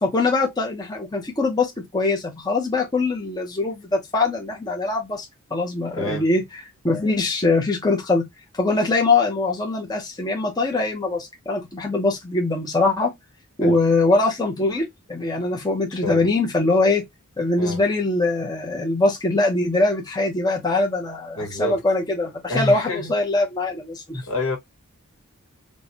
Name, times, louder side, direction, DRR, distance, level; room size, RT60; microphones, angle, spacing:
voice 1, 0.0-5.3 5.5-6.4 6.8-8.2 8.5-13.1 13.6-17.0 17.4-24.2, left 3 dB, 20° left, 0.7 m, -22 dB
voice 2, 15.9-16.3 17.6-17.8 21.4-21.8 22.5-23.1 24.3-24.6, left 2 dB, 65° left, 1.6 m, -27 dB
4.5 x 2.2 x 2.7 m
head